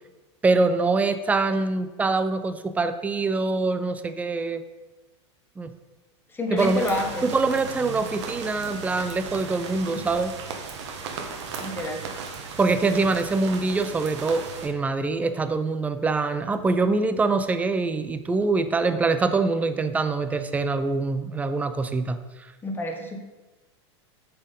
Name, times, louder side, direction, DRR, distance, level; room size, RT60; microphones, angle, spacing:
voice 1, 0.4-4.6 5.6-5.7 6.5-6.8 7.2-10.3 12.6-22.2, right 3 dB, 10° right, 10 dB, 0.4 m, -24 dB
voice 2, 6.3-7.2 9.9-10.0 11.6-12.0 22.6-23.2, left 2 dB, 15° left, 3 dB, 1.1 m, -29 dB
sound 1, 6.6-14.7, right 5 dB, 75° right, 1.1 m, -36 dB
7.1 x 4.5 x 5.2 m, 1.2 s
supercardioid pair, 130°, 15 cm